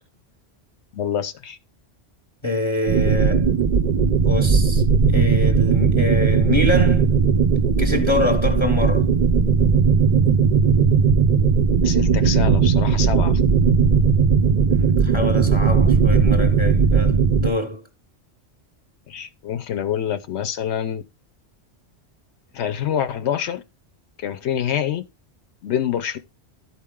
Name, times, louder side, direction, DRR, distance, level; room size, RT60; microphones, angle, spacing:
voice 1, 0.9-1.6 11.8-13.4 19.1-21.0 22.5-23.6 24.2-25.0 25.6-26.2, left 9 dB, 80° left, 0.9 m, -26 dB
voice 2, 2.4-3.5 4.2-4.8 5.1-7.1 7.8-9.1 14.7-17.8, left 1 dB, 30° left, 0.9 m, -25 dB
sound 1, 2.9-17.5, right 5 dB, 45° right, 0.7 m, -17 dB
12.0 x 4.4 x 3.6 m
omnidirectional pair, 1.1 m